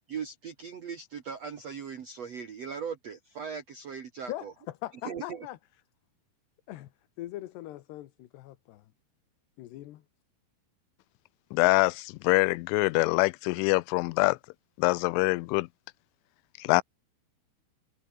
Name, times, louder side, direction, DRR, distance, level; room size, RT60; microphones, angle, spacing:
voice 1, 0.1-4.5 5.0-5.5, right 6 dB, 65° right, 1.6 m, -39 dB
voice 2, 4.8-5.6 6.7-6.9 7.2-8.9 9.6-10.0, left 15 dB, 70° left, 3.1 m, -40 dB
voice 3, 11.5-14.4 14.8-15.7 16.6-16.8, left 24 dB, 90° left, 3.1 m, -24 dB
omnidirectional pair, 5.5 m